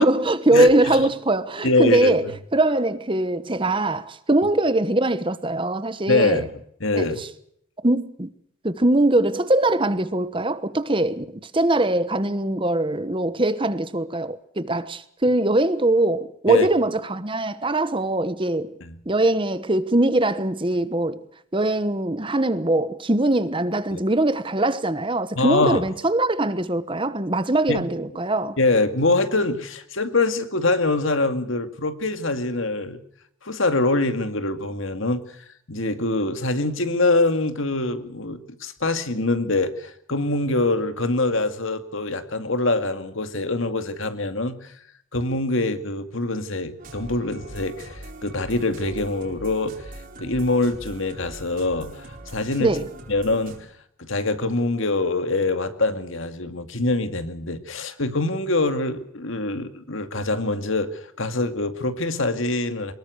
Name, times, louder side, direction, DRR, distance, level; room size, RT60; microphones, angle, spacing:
voice 1, 0.0-6.4 6.9-7.1 7.8-8.3 8.6-18.8 19.1-21.2 21.5-28.6 52.6-52.8, right 1 dB, 25° right, 1.1 m, -22 dB
voice 2, 0.5-1.0 1.6-2.2 6.1-6.5 6.8-7.2 16.5-16.7 18.8-19.0 23.9-24.0 25.4-25.8 27.7-27.8 28.6-33.0 33.4-35.2 35.7-44.6 45.1-49.7 50.2-52.7 53.1-53.6 54.0-62.9, left 2 dB, 65° left, 2.2 m, -24 dB
sound 1, 46.8-53.6, right 1 dB, 40° right, 4.4 m, -41 dB
24.0 x 21.0 x 6.5 m
head